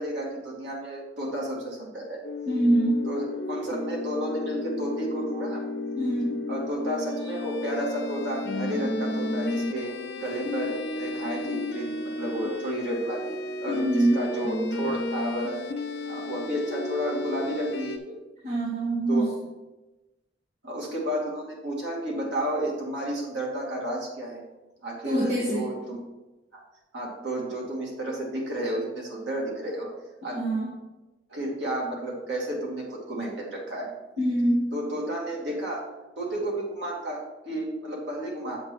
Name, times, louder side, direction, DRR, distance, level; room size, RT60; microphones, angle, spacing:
voice 1, 0.0-2.2 3.1-5.6 6.5-15.6 16.1-18.1 19.1-19.3 20.6-24.4 24.8-26.0 26.9-29.9 30.2-30.4 31.3-33.9 34.7-35.8 36.2-38.6, right 1 dB, 85° right, -3 dB, 2.4 m, -32 dB
sound 1, 2.2-18.0, left 2 dB, 80° left, 1.0 m, -33 dB
voice 2, 2.5-3.1 5.9-6.4 13.7-14.3 18.4-19.3 25.0-25.7 30.2-30.7 34.2-34.7, right 1 dB, 40° right, -5 dB, 1.4 m, -24 dB
7.7 x 5.3 x 4.6 m, 1.1 s
head